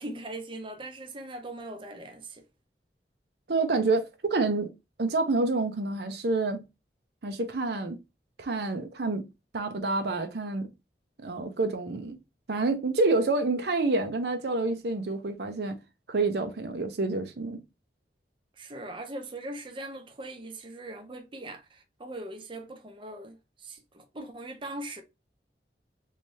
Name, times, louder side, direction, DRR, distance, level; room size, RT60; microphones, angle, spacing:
voice 1, 0.0-2.4 18.6-25.0, right 1 dB, 30° right, 0.7 m, -40 dB
voice 2, 3.5-4.7 5.0-6.6 7.2-8.0 8.4-9.3 9.5-10.7 11.2-12.2 12.5-15.8 16.1-17.6, right 3 dB, 65° right, 0.6 m, -28 dB
3.2 x 3.2 x 2.7 m
head